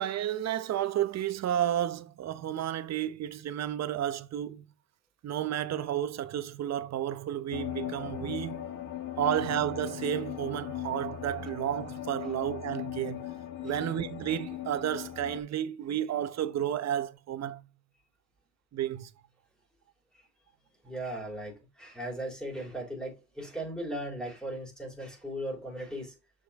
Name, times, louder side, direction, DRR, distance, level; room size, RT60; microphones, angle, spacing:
voice 1, 0.0-4.7 5.2-8.7 9.2-13.3 13.6-17.6 18.7-19.1, right 11 dB, 60° right, 0.8 m, -32 dB
sound 1, 7.5-15.4, left 11 dB, 80° left, 1.4 m, -38 dB
voice 2, 20.8-26.2, right 1 dB, 5° left, 3.4 m, -37 dB
6.6 x 5.6 x 3.1 m
cardioid pair, 90°, 30 cm